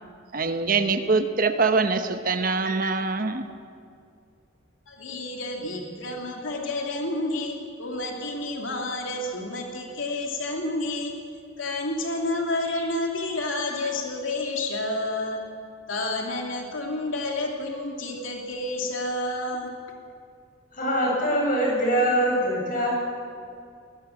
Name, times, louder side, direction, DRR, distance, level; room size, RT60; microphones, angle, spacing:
voice 1, 0.3-3.5, right 4 dB, 45° right, 8 dB, 1.0 m, -24 dB
voice 2, 4.9-11.2 11.6-15.5 15.9-19.7, left 2 dB, 80° left, 1 dB, 2.7 m, -30 dB
voice 3, 20.7-22.9, equal, 40° left, -2 dB, 7.4 m, -23 dB
22.0 x 20.0 x 7.2 m, 2.4 s
head